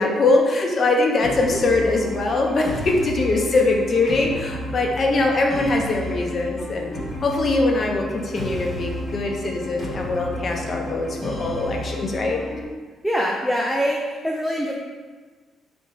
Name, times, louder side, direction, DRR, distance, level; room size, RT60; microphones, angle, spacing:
voice 1, 0.0-6.9 7.2-12.4, left 2 dB, 45° left, 1 dB, 0.6 m, -22 dB
sound 1, 1.2-12.6, left 1 dB, 15° left, 1.5 m, -32 dB
voice 2, 1.4-1.9 13.0-14.7, equal, ahead, -1 dB, 0.4 m, -24 dB
sound 2, 6.6-12.2, equal, 45° right, 1.0 m, -43 dB
2.8 x 2.6 x 4.3 m, 1.4 s
cardioid pair, 90°, 0 cm